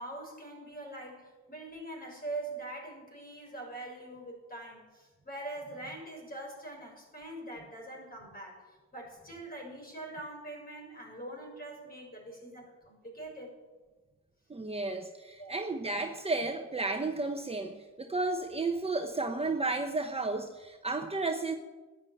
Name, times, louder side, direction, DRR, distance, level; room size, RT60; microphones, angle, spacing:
voice 1, 0.0-8.6 8.9-13.6 15.4-15.5, right 2 dB, 30° left, 1 dB, 6.4 m, -43 dB
voice 2, 14.5-21.6, right 3 dB, 20° right, 4 dB, 1.0 m, -33 dB
13.0 x 10.0 x 9.1 m, 1.3 s
cardioid pair, 90°, 30 cm